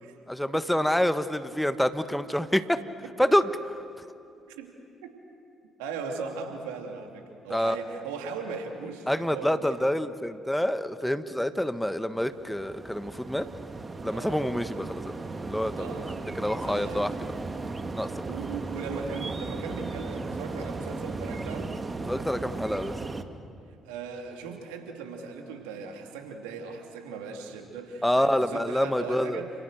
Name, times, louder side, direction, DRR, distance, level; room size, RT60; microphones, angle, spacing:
voice 1, 0.3-2.8 3.2-3.5 7.5-7.8 9.1-13.5 14.0-17.3 18.0-18.1 22.1-23.0 28.0-29.4, equal, 5° left, 11 dB, 1.3 m, -27 dB
voice 2, 5.8-9.8 14.1-14.5 15.8-16.2 16.6-17.1 18.0-21.8 23.8-29.5, right 5 dB, 75° right, 3 dB, 3.0 m, -38 dB
sound 1, 12.2-23.2, right 3 dB, 30° right, 1.9 m, -36 dB
29.5 x 28.5 x 6.7 m, 2.5 s
hypercardioid pair, 45°, 0 cm